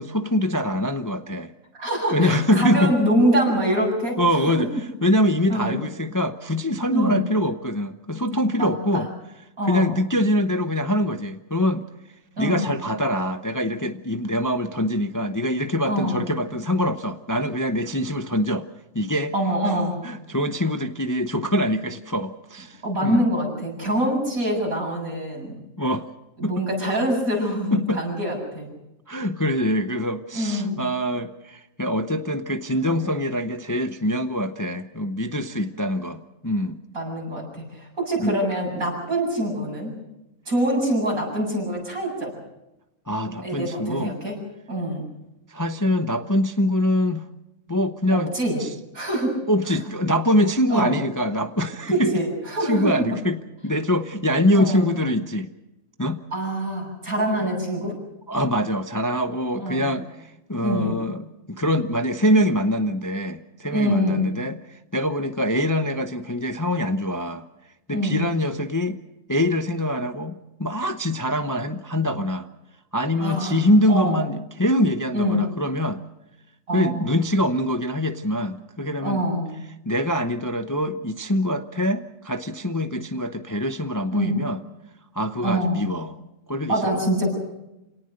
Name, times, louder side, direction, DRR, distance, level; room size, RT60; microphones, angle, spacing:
voice 1, 0.0-1.5 2.1-3.0 4.2-9.1 9.6-11.8 12.4-18.7 18.9-19.3 19.6-19.8 20.0-23.3 25.8-26.1 26.4-26.5 27.7-28.0 29.1-36.8 38.2-38.4 43.1-44.2 45.5-47.3 47.7-48.3 48.6-48.7 49.5-52.1 52.7-55.5 56.0-56.2 57.4-57.5 58.3-67.4 67.9-69.0 69.3-72.5 72.9-76.0 76.7-79.2 79.8-84.6 85.1-86.2 86.5-87.0, left 1 dB, 15° left, 8 dB, 0.7 m, -24 dB
voice 2, 1.7-4.5 5.5-5.8 6.9-7.3 8.6-9.1 9.6-9.9 12.4-12.7 15.9-16.2 19.3-20.0 22.8-25.6 26.4-28.7 30.3-30.8 32.9-33.0 36.9-39.9 40.5-42.4 43.4-44.3 44.7-45.0 48.1-48.6 48.9-49.3 50.7-50.9 51.7-53.2 54.5-54.9 56.3-58.0 59.6-60.0 60.6-61.0 63.7-64.2 67.9-68.3 73.2-74.2 75.1-75.5 76.7-77.1 79.0-79.5 84.1-84.4 85.4-85.9 86.7-87.3, equal, 80° right, 0 dB, 7.9 m, -25 dB
27.5 x 18.5 x 6.5 m, 0.95 s
omnidirectional pair, 1.5 m